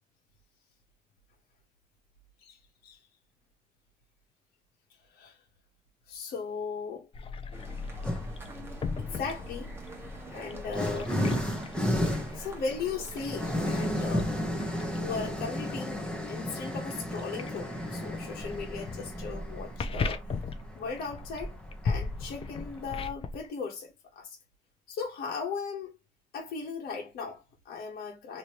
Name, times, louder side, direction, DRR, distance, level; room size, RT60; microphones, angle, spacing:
voice 1, 6.1-7.1 9.0-9.7 10.3-11.2 11.9-12.1 12.3-14.5 14.9-20.3 20.7-21.6 21.8-24.4 24.9-25.9 26.3-28.4, left 5 dB, 65° left, 1.3 m, -37 dB
sound 1, 7.1-23.5, left 4 dB, 35° left, 0.6 m, -39 dB
sound 2, 7.5-13.5, right 2 dB, 15° right, 1.3 m, -47 dB
sound 3, 8.0-8.5 9.5-23.0, left 1 dB, 5° left, 1.0 m, -34 dB
3.1 x 3.0 x 2.9 m
cardioid pair, 110°, 17 cm